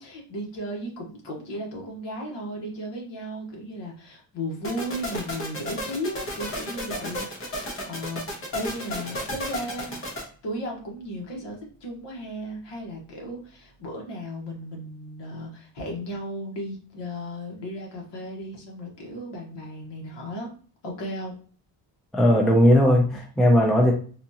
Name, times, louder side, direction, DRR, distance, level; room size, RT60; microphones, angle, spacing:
voice 1, 0.0-20.5 20.8-21.4, equal, 60° left, -1 dB, 1.3 m, -35 dB
sound 1, 4.6-10.2, equal, 25° left, 0.9 m, -33 dB
voice 2, 22.1-23.9, equal, ahead, 0 dB, 0.3 m, -18 dB
3.9 x 2.4 x 2.8 m, 0.42 s
cardioid pair, 165°, 48 cm